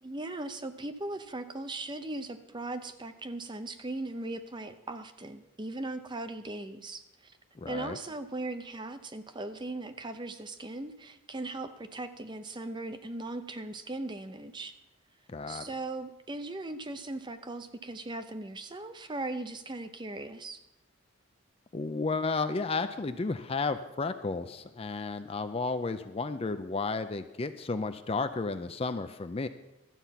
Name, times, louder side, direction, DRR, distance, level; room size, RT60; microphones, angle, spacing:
voice 1, 0.0-7.3 7.7-14.7 15.5-20.6, right 2 dB, 20° right, 10 dB, 0.6 m, -38 dB
voice 2, 7.6-8.0 15.3-15.6 21.7-29.5, left 3 dB, 25° left, 10 dB, 0.4 m, -32 dB
12.5 x 8.1 x 5.8 m, 0.96 s
head